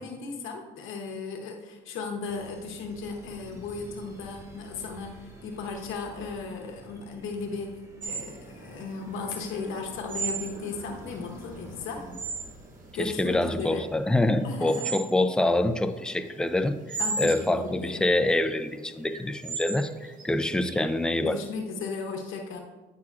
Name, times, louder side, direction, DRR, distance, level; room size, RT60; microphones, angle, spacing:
voice 1, 0.0-12.1 12.9-13.9 14.4-14.9 17.0-18.0 21.2-22.6, left 4 dB, 85° left, 2 dB, 0.8 m, -36 dB
sound 1, 2.2-14.6, right 1 dB, 15° right, 1.5 m, -50 dB
sound 2, 8.0-21.4, right 4 dB, 40° right, 0.9 m, -37 dB
voice 2, 13.0-16.8 17.2-19.9 20.2-21.4, left 1 dB, 5° left, 8 dB, 0.4 m, -25 dB
9.7 x 5.9 x 2.5 m, 1.2 s
cardioid pair, 90°, 20 cm